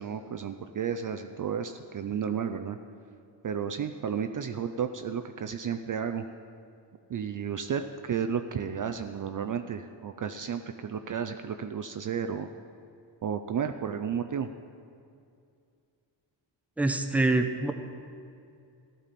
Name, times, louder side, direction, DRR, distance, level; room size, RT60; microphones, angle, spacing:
voice 1, 0.0-2.8 3.4-6.3 7.1-12.5 13.2-14.5, right 7 dB, 45° right, 8 dB, 0.5 m, -32 dB
voice 2, 16.8-17.7, right 2 dB, 5° right, 5 dB, 0.7 m, -25 dB
14.5 x 12.0 x 4.2 m, 2.4 s
wide cardioid pair, 120°, 46 cm